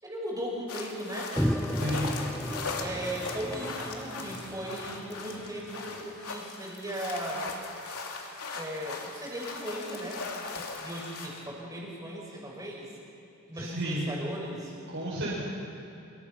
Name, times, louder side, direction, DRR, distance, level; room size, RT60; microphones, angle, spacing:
voice 1, 0.0-1.9 2.8-7.5 8.5-12.9 13.5-14.7, right 1 dB, 15° right, -3 dB, 6.0 m, -37 dB
sound 1, 0.7-11.5, left 3 dB, 90° left, 2.7 m, -39 dB
sound 2, 1.4-6.0, equal, ahead, 0.6 m, -34 dB
voice 2, 1.8-2.1 13.5-14.1 14.9-15.4, equal, 55° right, -8 dB, 5.7 m, -32 dB
26.5 x 22.0 x 5.9 m, 3.0 s
head